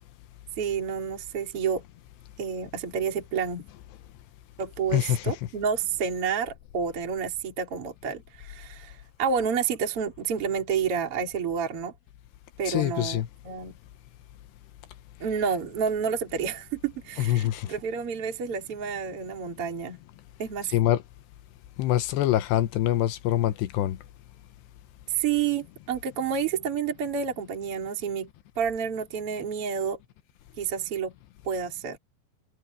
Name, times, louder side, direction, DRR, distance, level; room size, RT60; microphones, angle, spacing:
voice 1, 0.6-1.8 2.4-3.7 4.6-11.9 12.6-13.8 15.2-20.0 20.4-20.7 25.1-28.3 28.6-30.0 30.6-31.1 31.4-32.0, right 7 dB, 35° right, 3.7 m, -29 dB
voice 2, 4.9-5.4 12.6-13.3 17.2-17.7 20.7-21.0 21.8-24.0, left 13 dB, 80° left, 2.9 m, -25 dB
omnidirectional pair, 5.1 m